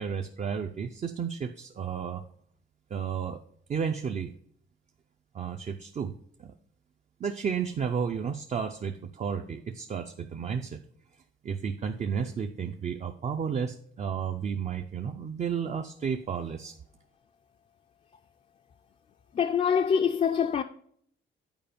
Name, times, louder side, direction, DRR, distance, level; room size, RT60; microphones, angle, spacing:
voice 1, 0.0-2.2 2.9-3.4 3.7-4.3 5.3-6.5 7.2-10.8 11.4-16.8, right 7 dB, 35° right, 0.4 m, -32 dB
voice 2, 19.3-20.6, left 7 dB, 35° left, 0.4 m, -24 dB
9.1 x 4.8 x 5.1 m
wide cardioid pair, 170°, 21 cm